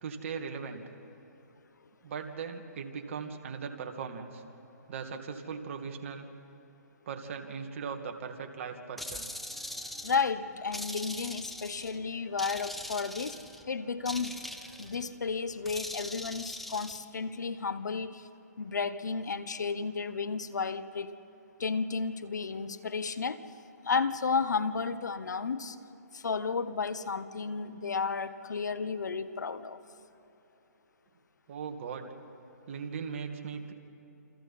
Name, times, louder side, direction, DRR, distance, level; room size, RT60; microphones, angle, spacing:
voice 1, 0.0-0.8 2.0-4.4 4.9-6.3 7.1-9.3 31.5-32.1 32.7-33.7, right 6 dB, 45° right, 5 dB, 2.0 m, -39 dB
sound 1, 9.0-10.3 10.7-12.0 12.4-13.6 14.0-15.0 15.6-17.0, left 1 dB, ahead, 0.7 m, -41 dB
sound 2, 9.0-15.7, right 4 dB, 30° right, 2.5 m, -59 dB
voice 2, 10.0-13.4 13.7-14.4 14.8-18.3 18.6-21.2 21.6-23.4 23.8-25.8 26.1-29.8, left 5 dB, 80° left, 14 dB, 1.1 m, -32 dB
28.0 x 27.5 x 4.3 m, 3.0 s
hypercardioid pair, 150°, 9 cm